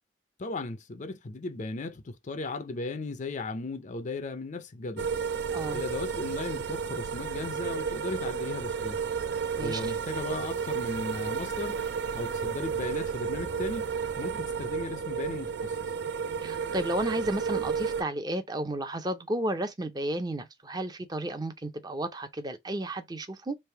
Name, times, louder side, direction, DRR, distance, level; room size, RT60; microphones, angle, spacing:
voice 1, 0.4-5.1 5.7-9.0 9.6-11.8 12.1-13.8 14.2-15.8, left 3 dB, 40° left, 0.5 m, -36 dB
sound 1, 5.0-18.0, right 6 dB, 65° right, 0.5 m, -32 dB
voice 2, 5.5-5.8 9.6-9.9 16.4-23.5, right 1 dB, 20° right, 0.6 m, -32 dB
3.4 x 2.5 x 4.5 m
head